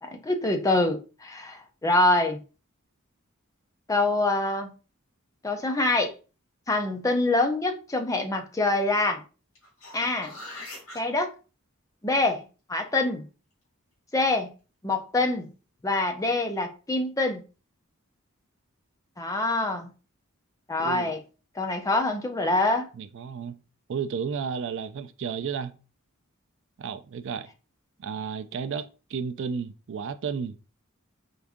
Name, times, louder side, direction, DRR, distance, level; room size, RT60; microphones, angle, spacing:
voice 1, 0.0-2.4 3.9-4.7 5.4-6.1 6.7-9.2 9.9-10.3 10.9-11.3 12.0-12.4 12.7-13.2 14.1-14.5 14.8-15.4 15.8-17.4 19.2-19.9 20.7-21.2 21.6-22.9, left 2 dB, 15° left, 0.6 m, -25 dB
sound 1, 9.6-11.0 15.8-15.9, left 1 dB, 70° left, 2.3 m, -42 dB
voice 2, 20.8-21.1 22.9-23.6 23.9-25.8 26.8-27.5 28.0-30.6, right 6 dB, 60° right, 0.4 m, -33 dB
4.7 x 2.6 x 3.6 m
head